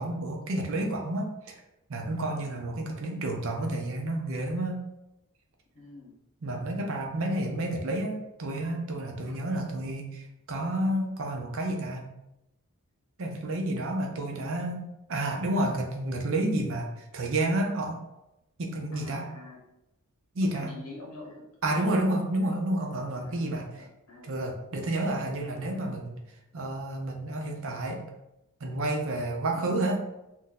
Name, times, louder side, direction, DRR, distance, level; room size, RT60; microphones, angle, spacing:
voice 1, 0.0-1.6 1.9-4.8 6.4-12.1 13.2-18.0 18.6-19.3 20.3-20.7 21.6-23.8 24.2-26.2 26.5-28.0 28.6-30.0, right 1 dB, 65° right, 2 dB, 0.6 m, -30 dB
voice 2, 2.3-2.6 5.7-6.1 18.9-19.6 20.4-22.6 23.2-24.4 29.5-29.8, left 2 dB, 85° left, -3 dB, 1.1 m, -46 dB
2.6 x 2.1 x 3.9 m, 0.90 s
head